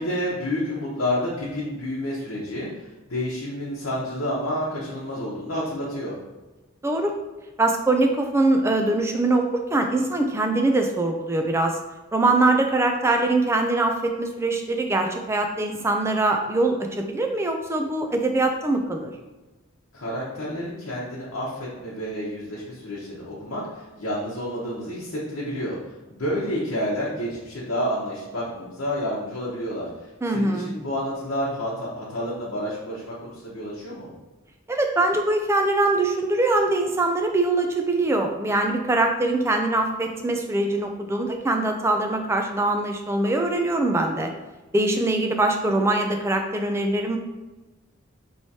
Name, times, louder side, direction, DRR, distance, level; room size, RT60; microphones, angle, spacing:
voice 1, 0.0-6.2 19.9-25.8 26.1-29.9 30.3-34.1, equal, 75° left, -7 dB, 0.9 m, -29 dB
voice 2, 7.6-11.8 12.1-19.1 30.2-30.7 34.7-44.3 44.7-47.2, right 2 dB, 15° right, 4 dB, 0.3 m, -23 dB
4.6 x 3.1 x 2.8 m, 1.1 s
head